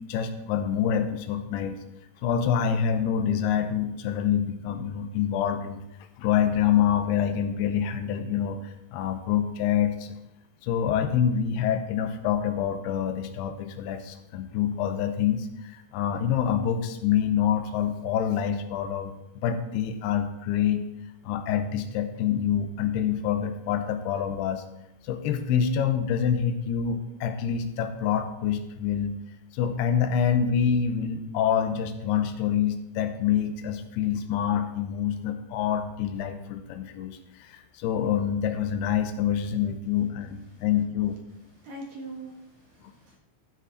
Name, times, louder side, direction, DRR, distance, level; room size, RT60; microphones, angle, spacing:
voice 1, 0.0-1.8 2.2-5.8 6.2-10.2 10.6-20.8 21.2-24.6 25.0-29.2 29.5-41.2, left 8 dB, 85° left, 8 dB, 2.8 m, -26 dB
voice 2, 41.6-43.2, right 2 dB, 55° right, -2 dB, 2.6 m, -42 dB
14.0 x 6.0 x 4.1 m, 0.90 s
omnidirectional pair, 4.6 m